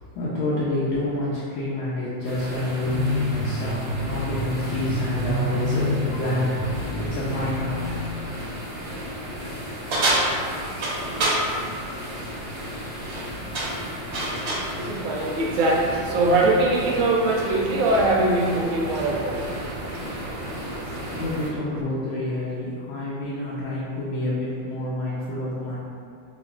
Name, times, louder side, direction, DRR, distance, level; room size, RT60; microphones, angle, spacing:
voice 1, 0.1-8.0 11.0-11.1 12.9-13.0 21.2-25.8, left 1 dB, 85° left, -7 dB, 1.4 m, -28 dB
sound 1, 2.2-21.5, equal, 25° right, 0.4 m, -35 dB
sound 2, 2.9-8.2, left 1 dB, 30° left, 0.7 m, -28 dB
sound 3, 9.9-11.5 12.9-13.2 13.5-14.7, right 2 dB, 60° right, 1.2 m, -25 dB
voice 2, 14.7-21.2, right 2 dB, 85° right, -2 dB, 1.4 m, -23 dB
5.7 x 2.3 x 2.3 m, 2.3 s
omnidirectional pair, 2.1 m